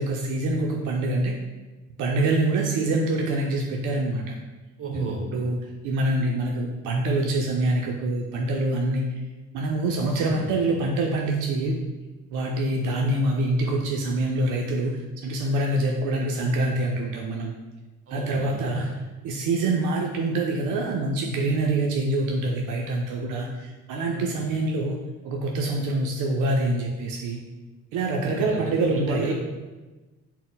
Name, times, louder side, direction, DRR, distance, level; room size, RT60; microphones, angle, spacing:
voice 1, 0.0-1.3 2.0-4.4 4.9-5.6 5.8-9.1 9.5-11.8 12.3-17.5 18.1-18.9 19.2-25.0 25.2-27.4 27.9-29.3, right 2 dB, 85° right, 0 dB, 0.5 m, -25 dB
voice 2, 4.8-5.3 10.1-10.6 18.1-18.9 24.1-24.5 28.2-29.3, right 3 dB, 45° right, 1 dB, 0.9 m, -34 dB
4.1 x 2.1 x 3.8 m, 1.2 s
cardioid pair, 90°, 30 cm